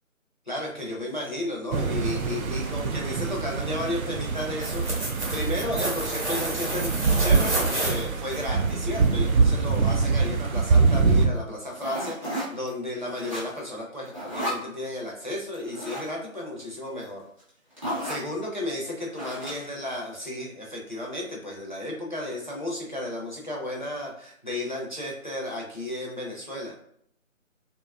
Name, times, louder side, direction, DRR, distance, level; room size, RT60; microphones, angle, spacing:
voice 1, 0.5-4.8 5.3-6.9 7.2-17.2 18.0-26.7, left 1 dB, 35° left, -2 dB, 0.4 m, -33 dB
sound 1, 1.7-11.3, right 4 dB, 85° right, 0.5 m, -24 dB
sound 2, 4.4-8.4 8.9-9.0, right 1 dB, 55° right, 0.9 m, -30 dB
sound 3, 11.7-12.7 13.0-13.7 14.0-14.6 15.5-16.1 17.0-17.1 17.4-17.5 17.8-18.3 19.1-19.8, equal, 25° right, 0.7 m, -33 dB
2.7 x 2.3 x 2.2 m, 0.68 s
figure-of-eight pair, 165°, 41 cm